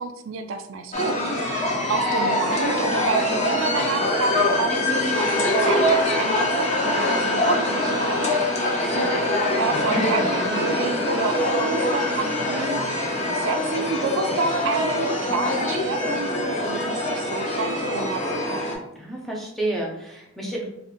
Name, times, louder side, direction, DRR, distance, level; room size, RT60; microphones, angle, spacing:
voice 1, 0.0-1.6 1.9-9.2 9.6-18.6, right 4 dB, 90° right, 7 dB, 0.3 m, -30 dB
sound 1, 0.9-18.8, left 1 dB, 35° left, 0.7 m, -23 dB
voice 2, 19.0-20.6, right 1 dB, ahead, -3 dB, 0.6 m, -30 dB
2.5 x 2.4 x 3.7 m, 0.80 s
head